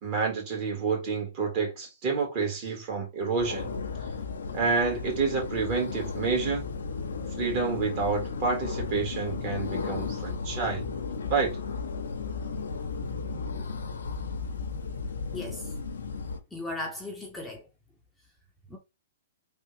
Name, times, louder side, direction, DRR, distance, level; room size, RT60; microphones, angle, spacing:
voice 1, 0.0-3.7 4.5-6.6 7.3-10.8 11.3-11.6, right 4 dB, 40° right, 1.9 m, -29 dB
sound 1, 3.4-16.4, left 5 dB, 85° left, 0.6 m, -34 dB
voice 2, 15.3-15.7 16.5-17.7 18.7-18.8, left 2 dB, 5° left, 0.8 m, -36 dB
3.4 x 2.5 x 3.2 m
hypercardioid pair, 125°, 0 cm